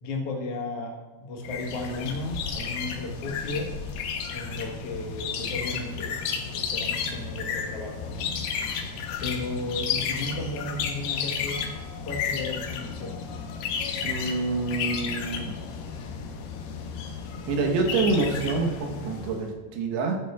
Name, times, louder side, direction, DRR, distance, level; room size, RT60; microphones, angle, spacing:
voice 1, 0.0-3.7 4.3-8.3 9.2-11.6 12.0-13.2, left 2 dB, 70° left, -1 dB, 1.5 m, -34 dB
sound 1, 1.4-19.5, left 6 dB, 85° left, 2.9 m, -32 dB
voice 2, 14.0-15.6 17.5-20.2, right 3 dB, 90° right, 2 dB, 3.2 m, -27 dB
13.5 x 8.8 x 2.3 m, 1.3 s
omnidirectional pair, 4.6 m